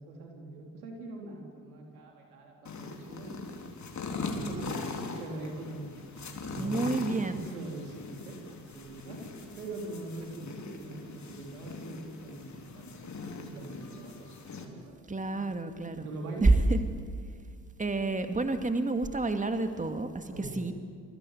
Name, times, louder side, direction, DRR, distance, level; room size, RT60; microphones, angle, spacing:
voice 1, 0.0-3.5 4.4-4.8 5.2-9.2 9.6-15.0 16.0-16.5 20.3-20.7, right 2 dB, 85° right, 1 dB, 4.0 m, -42 dB
sound 1, 2.6-14.6, left 3 dB, 40° left, 3.9 m, -41 dB
voice 2, 6.6-7.5 15.1-16.1 16.4-16.8 17.8-20.7, right 2 dB, 15° right, 8 dB, 2.4 m, -28 dB
28.0 x 22.5 x 8.5 m, 2.1 s
hypercardioid pair, 50°, 43 cm